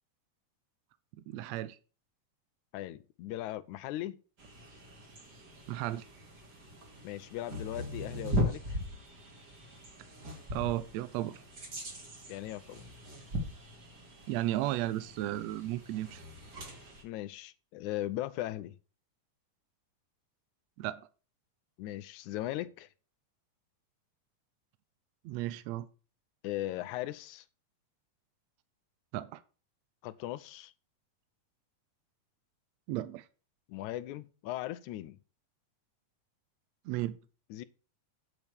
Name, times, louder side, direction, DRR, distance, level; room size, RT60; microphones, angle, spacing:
voice 1, 1.3-1.8 5.7-6.1 10.5-11.4 14.3-16.2 20.8-21.1 25.2-25.9 29.1-29.4 32.9-33.3 36.8-37.2, right 15 dB, 80° right, 1.6 m, -34 dB
voice 2, 2.7-4.2 7.0-8.8 12.3-12.8 17.0-18.7 21.8-22.9 26.4-27.5 30.0-30.7 33.7-35.2 37.5-37.6, left 15 dB, 75° left, 2.0 m, -38 dB
sound 1, 4.4-17.0, left 1 dB, 35° right, 2.8 m, -40 dB
8.9 x 6.8 x 6.3 m
omnidirectional pair, 3.7 m